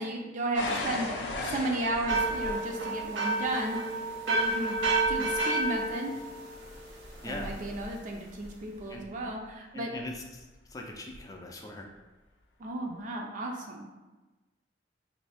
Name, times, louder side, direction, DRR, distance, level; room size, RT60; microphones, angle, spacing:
voice 1, 0.0-6.1 7.3-9.9 12.6-13.8, right 1 dB, 45° right, 1 dB, 0.4 m, -34 dB
sound 1, 0.5-9.3 10.1-10.5 11.1-11.2, left 2 dB, 70° left, 0.5 m, -40 dB
sound 2, 2.1-7.0, right 2 dB, 80° right, 0.7 m, -30 dB
voice 2, 7.2-7.6 8.9-9.0 9.7-10.4 10.7-11.9, left 2 dB, 20° left, 1 dB, 0.4 m, -40 dB
3.2 x 2.6 x 3.3 m, 1.2 s
head